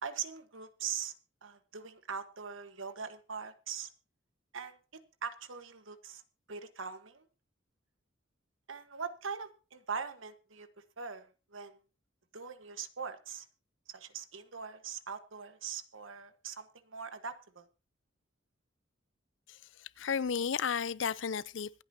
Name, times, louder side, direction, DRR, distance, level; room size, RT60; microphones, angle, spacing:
voice 1, 0.0-1.1 1.4-3.9 4.5-4.8 5.2-6.2 6.5-7.3 8.7-10.7 11.0-11.8 12.3-13.4 13.9-17.7, right 6 dB, 90° right, 1.3 m, -41 dB
voice 2, 19.5-21.8, left 6 dB, 70° left, 0.5 m, -34 dB
25.5 x 9.0 x 2.8 m
head